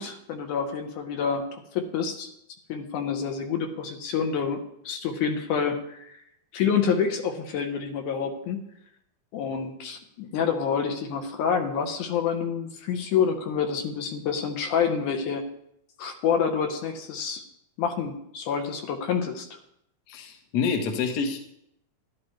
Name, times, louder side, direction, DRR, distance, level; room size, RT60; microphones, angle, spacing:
voice 1, 0.0-2.3 2.7-6.2 6.5-8.6 9.3-15.4 16.0-17.4 17.8-19.5, left 6 dB, 85° left, 5 dB, 2.6 m, -28 dB
voice 2, 20.1-21.4, left 5 dB, 60° left, 3 dB, 1.0 m, -27 dB
12.0 x 11.5 x 3.1 m, 0.74 s
omnidirectional pair, 3.5 m